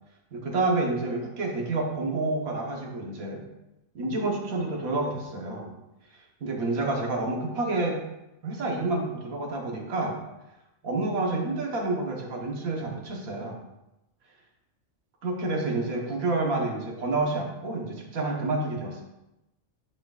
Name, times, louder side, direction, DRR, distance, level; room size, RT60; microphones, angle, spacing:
voice 1, 0.3-3.4 3.9-5.7 6.1-8.0 8.4-10.2 10.8-13.6 15.2-19.0, right 2 dB, 85° right, 0 dB, 1.7 m, -29 dB
11.0 x 4.9 x 2.4 m, 0.94 s
omnidirectional pair, 1.4 m